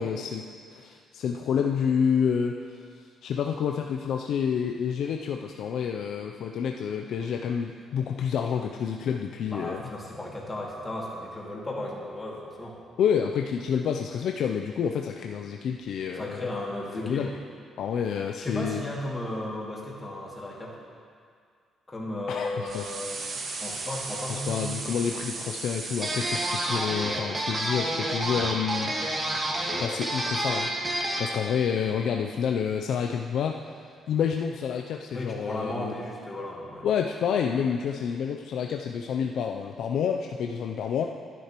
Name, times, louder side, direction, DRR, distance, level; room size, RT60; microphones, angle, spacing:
voice 1, 0.0-9.8 13.0-16.5 17.0-17.3 17.8-18.8 22.3-22.9 24.3-29.0 29.4-30.7 31.2-33.8 34.1-36.0 36.8-41.1, left 7 dB, 75° left, 3 dB, 0.4 m, -29 dB
voice 2, 9.5-12.8 16.2-17.3 18.4-20.8 21.9-24.8 35.1-36.9, left 1 dB, 20° left, -4 dB, 2.3 m, -35 dB
sound 1, 22.7-26.8, right 3 dB, 60° right, 1.3 m, -36 dB
sound 2, 26.0-31.3, right 1 dB, 25° right, 1.6 m, -29 dB
11.5 x 10.0 x 3.0 m, 2.2 s
cardioid pair, 90°, 0 cm